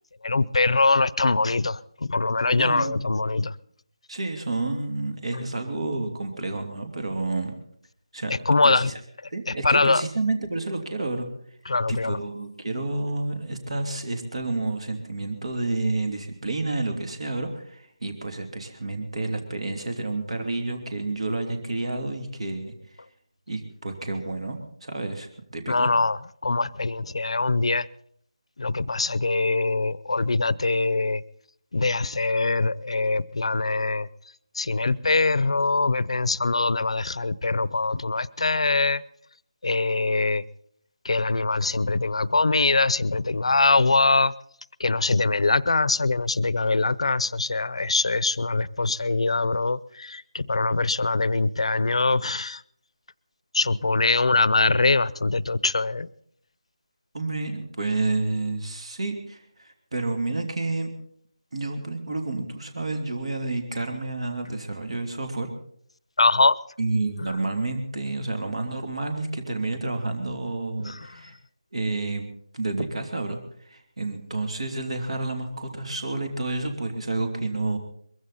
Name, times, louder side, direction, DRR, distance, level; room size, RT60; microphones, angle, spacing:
voice 1, 0.2-3.5 8.5-8.9 9.5-10.0 11.7-12.2 25.7-27.9 28.6-31.2 31.7-34.1 34.6-39.0 39.6-40.4 41.0-44.3 44.8-52.6 53.5-56.1 66.2-66.6 70.8-71.1, left 3 dB, 65° left, 0.7 m, -23 dB
voice 2, 2.5-3.0 4.1-7.5 8.1-8.3 8.6-9.0 9.3-11.3 11.9-22.8 23.5-25.9 57.1-60.9 61.5-65.5 66.8-71.4 71.7-72.3 72.5-77.8, right 2 dB, 65° right, 2.9 m, -30 dB
22.0 x 15.5 x 4.2 m
figure-of-eight pair, 165°, 3 cm